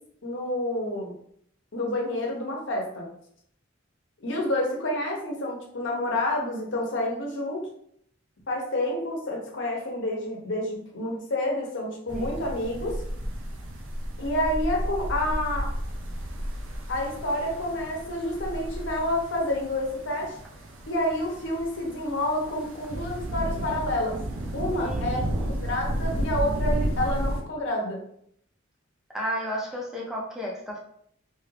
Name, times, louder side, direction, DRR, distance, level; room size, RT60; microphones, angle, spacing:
voice 1, 0.2-1.1 1.7-3.1 4.2-7.7 8.5-13.0 14.2-15.7 16.9-20.3 20.9-24.2 24.5-25.2 25.6-28.0, left 1 dB, 65° left, 0 dB, 0.8 m, -29 dB
sound 1, 12.1-27.4, equal, 80° right, 0.6 m, -32 dB
voice 2, 24.8-25.6 29.1-30.8, equal, ahead, -4 dB, 0.5 m, -33 dB
2.8 x 2.4 x 3.2 m, 0.68 s
head